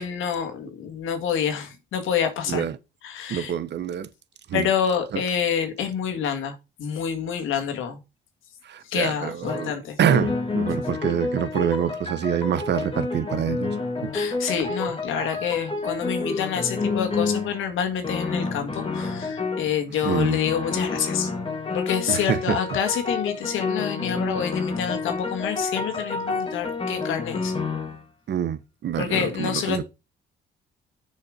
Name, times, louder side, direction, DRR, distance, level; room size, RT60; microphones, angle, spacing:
voice 1, 0.0-2.7 3.0-3.5 4.5-8.0 8.9-10.0 14.1-21.3 21.7-27.5 29.0-29.8, left 8 dB, 85° left, 1.9 m, -27 dB
voice 2, 2.5-2.8 3.3-4.1 4.5-4.7 5.1-5.2 8.6-9.7 10.0-13.7 14.0-14.1 20.0-20.4 22.1-22.6 28.3-29.8, right 9 dB, 60° right, 1.0 m, -26 dB
sound 1, 9.4-9.8 10.0-17.6 18.0-19.7 20.1-28.0 29.1-29.2, left 4 dB, 25° left, 2.0 m, -29 dB
6.8 x 5.6 x 5.1 m
cardioid pair, 90°, 20 cm